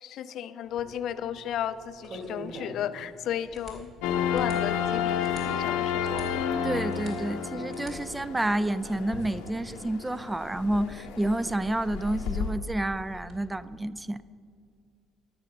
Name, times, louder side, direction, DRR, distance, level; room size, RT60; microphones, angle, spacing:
voice 1, 0.0-3.9 4.3-6.3, left 10 dB, 65° left, 14 dB, 0.4 m, -34 dB
sound 1, 0.6-13.4, right 1 dB, 55° right, 2.7 m, -48 dB
sound 2, 4.0-12.5, left 8 dB, 80° left, 0.8 m, -31 dB
voice 2, 6.6-14.2, right 1 dB, 15° right, 16 dB, 0.4 m, -29 dB
12.5 x 5.8 x 6.7 m, 2.3 s
hypercardioid pair, 60°, 0 cm